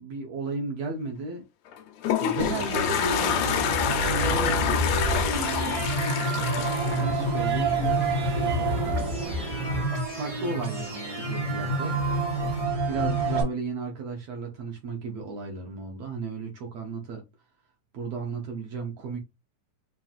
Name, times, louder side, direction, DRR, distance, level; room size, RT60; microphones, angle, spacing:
voice 1, 0.0-1.4 2.2-3.4 4.2-5.9 7.0-7.7 10.0-12.0 12.9-17.2 17.9-19.2, right 4 dB, 75° right, 1.5 m, -34 dB
Toilet flush, 1.7-8.0, left 10 dB, 80° left, 1.6 m, -28 dB
sound 1, 2.4-13.4, right 2 dB, 60° right, 0.8 m, -28 dB
sound 2, 3.8-9.3, right 3 dB, 35° right, 0.8 m, -35 dB
5.6 x 2.5 x 2.4 m
omnidirectional pair, 3.8 m